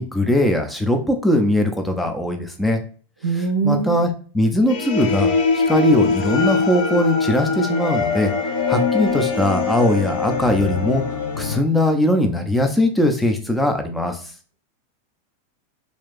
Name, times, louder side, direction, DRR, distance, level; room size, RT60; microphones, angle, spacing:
voice 1, 0.0-2.8 3.3-8.3 8.7-11.0 11.4-14.2, left 1 dB, 5° left, 5 dB, 0.6 m, -20 dB
voice 2, 3.2-4.0, right 5 dB, 70° right, 4 dB, 0.6 m, -21 dB
sound 1, 4.7-11.6, left 4 dB, 50° left, 0.6 m, -22 dB
3.2 x 2.7 x 3.3 m, 0.41 s
figure-of-eight pair, 90°, 0 cm